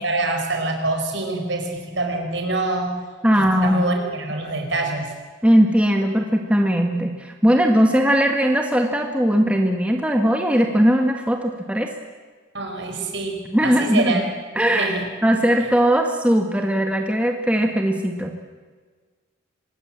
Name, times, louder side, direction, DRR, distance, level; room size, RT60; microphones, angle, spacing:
voice 1, 0.0-2.9 3.6-5.1 12.5-14.2 14.7-15.1, right 2 dB, 65° right, 4 dB, 5.0 m, -25 dB
voice 2, 3.2-3.8 5.4-11.9 13.5-14.2 14.6-18.4, equal, 5° right, 3 dB, 1.8 m, -19 dB
25.0 x 20.5 x 7.6 m, 1.5 s
head